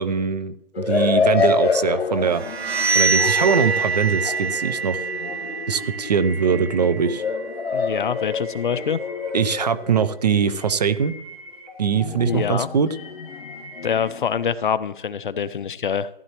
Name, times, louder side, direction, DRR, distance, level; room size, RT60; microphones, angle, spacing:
voice 1, 0.0-2.4 2.9-5.0 5.7-7.2 9.3-11.1 11.8-12.9, right 6 dB, 40° right, 14 dB, 0.6 m, -22 dB
sound 1, 0.7-10.2 11.9-14.3, left 5 dB, 75° left, 1.5 m, -27 dB
sound 2, 2.3-7.9, right 4 dB, 80° right, 1.6 m, -25 dB
sound 3, 4.5-14.1, left 1 dB, 15° left, 2.5 m, -42 dB
voice 2, 7.7-9.0 12.2-12.7 13.8-16.1, left 7 dB, 50° left, 15 dB, 0.6 m, -25 dB
15.0 x 11.0 x 3.0 m, 0.85 s
hypercardioid pair, 160°, 31 cm